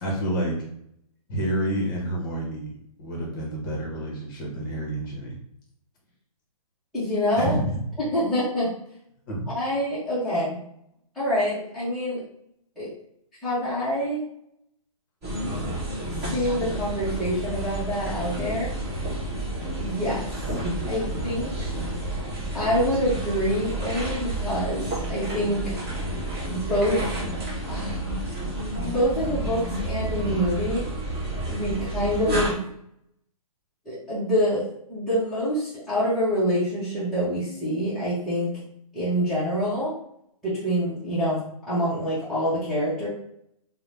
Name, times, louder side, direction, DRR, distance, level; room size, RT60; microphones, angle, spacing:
voice 1, 0.0-0.6 1.3-5.4 7.4-7.9 9.3-9.5, right 1 dB, 35° left, -2 dB, 0.8 m, -29 dB
voice 2, 6.9-7.6 8.0-8.7 9.5-10.6 11.1-12.2 12.8-12.9 13.4-14.2 16.3-18.7 19.8-20.3 20.9-21.7 22.5-25.7 26.5-27.0 27.7-28.0 28.8-30.9 31.5-32.6 33.9-38.5 38.9-39.9 40.4-43.1, equal, ahead, -15 dB, 0.5 m, -26 dB
sound 1, 15.2-32.5, right 1 dB, 20° right, 1.0 m, -30 dB
2.5 x 2.0 x 3.1 m, 0.73 s
hypercardioid pair, 160°, 19 cm